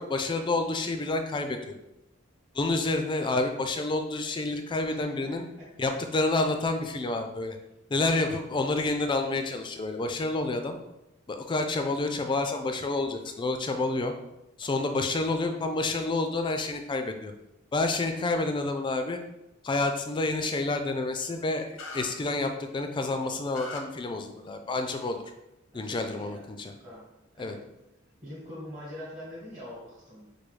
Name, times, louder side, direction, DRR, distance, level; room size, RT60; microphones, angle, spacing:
voice 1, 0.0-1.8 2.5-5.4 5.8-7.6 7.9-10.8 11.3-14.1 14.6-17.3 17.7-19.2 19.6-25.2 25.7-26.7 27.4-27.6, left 2 dB, 25° left, 6 dB, 0.3 m, -29 dB
voice 2, 4.8-5.6 25.7-27.1 27.3-27.6 28.2-30.3, left 1 dB, 35° right, -7 dB, 1.2 m, -44 dB
sound 1, 21.8-22.1 23.5-23.8, left 3 dB, 90° left, 0.6 m, -39 dB
4.6 x 2.3 x 3.2 m, 0.91 s
head